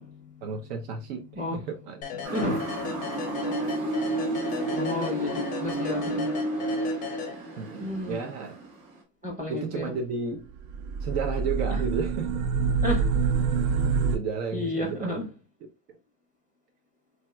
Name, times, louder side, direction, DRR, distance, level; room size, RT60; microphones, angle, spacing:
voice 1, 0.4-2.0 7.6-8.5 9.5-10.5 11.0-12.4 14.1-15.2, right 5 dB, 80° right, 0.9 m, -33 dB
sound 1, 2.0-7.8, left 7 dB, 20° left, 0.4 m, -36 dB
Motor vehicle (road) / Siren, 2.2-9.0, right 2 dB, 45° right, 1.2 m, -31 dB
voice 2, 2.3-2.6 4.7-6.3 7.8-8.2 9.2-9.9 12.8-13.0 14.5-15.3, left 2 dB, 15° right, 0.7 m, -31 dB
sound 2, 10.6-14.2, right 5 dB, 65° right, 0.5 m, -26 dB
3.3 x 2.8 x 2.3 m
supercardioid pair, 140°, 47 cm